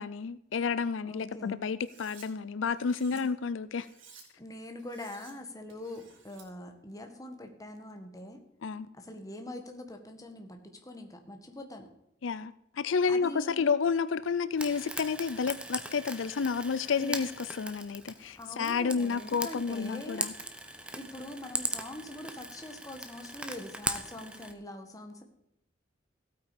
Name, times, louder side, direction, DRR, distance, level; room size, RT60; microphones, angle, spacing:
voice 1, 0.0-3.9 8.6-8.9 12.2-17.3 17.6-20.3, left 5 dB, 85° left, 0.5 m, -30 dB
voice 2, 1.0-1.6 3.1-3.2 4.4-8.4 8.9-11.9 13.1-13.7 17.0-17.3 18.3-20.3 20.9-25.2, left 1 dB, 20° left, 1.7 m, -43 dB
Cutlery silverware, 1.8-2.3 2.7-3.2 3.8-4.2 4.8-5.3 5.7-6.5, right 5 dB, 85° right, 3.5 m, -55 dB
Frying (food), 14.6-24.5, right 1 dB, 5° right, 1.0 m, -39 dB
15.5 x 8.7 x 5.2 m
head